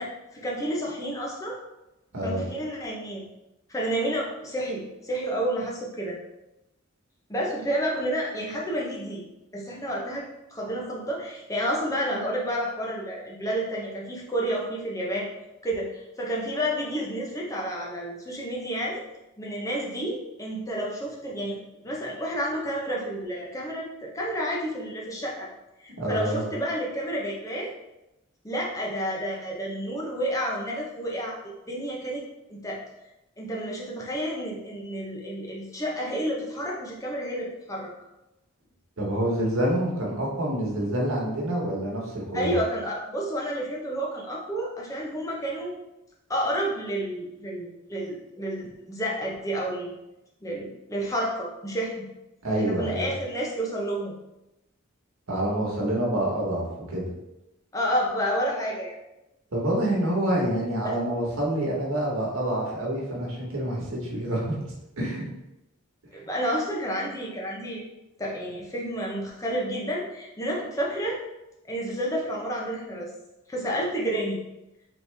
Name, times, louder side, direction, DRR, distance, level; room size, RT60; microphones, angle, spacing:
voice 1, 0.0-1.6 2.2-3.3 3.7-6.2 7.3-9.2 9.5-15.3 15.6-19.0 19.4-21.6 21.8-25.5 25.8-27.7 28.4-31.4 31.7-32.2 32.5-32.8 33.4-37.9 42.3-45.7 46.3-49.9 50.4-52.1 52.6-54.1 57.7-59.0 60.8-60.9 66.1-67.8 68.2-71.2 71.7-73.1 73.5-74.4, equal, 15° left, -3 dB, 0.8 m, -30 dB
voice 2, 26.0-26.4 39.0-42.5 52.4-53.1 55.3-57.1 59.5-64.6 65.0-65.2, right 1 dB, 80° right, -3 dB, 1.3 m, -27 dB
4.2 x 3.2 x 3.4 m, 0.93 s
head